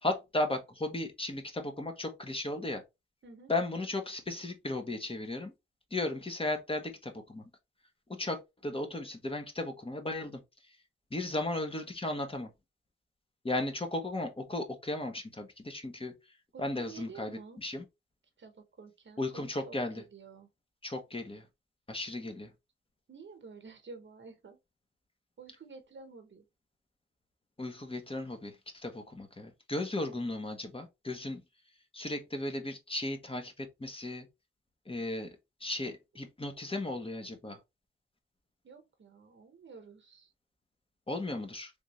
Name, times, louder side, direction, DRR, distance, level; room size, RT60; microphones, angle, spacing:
voice 1, 0.0-2.8 3.5-5.5 5.9-7.5 8.1-10.4 10.7-10.8 11.1-12.5 13.4-16.1 16.6-17.8 19.2-20.0 20.8-21.5 21.9-22.5 27.6-31.4 31.9-34.3 34.9-37.6 41.1-41.7, left 2 dB, 25° left, 1.0 m, -35 dB
voice 2, 3.2-3.5 16.5-17.6 18.4-20.5 23.1-24.6 25.4-26.5 30.0-30.2 38.6-40.3, right 5 dB, 60° right, 1.0 m, -51 dB
3.5 x 2.6 x 3.0 m
cardioid pair, 65°, 21 cm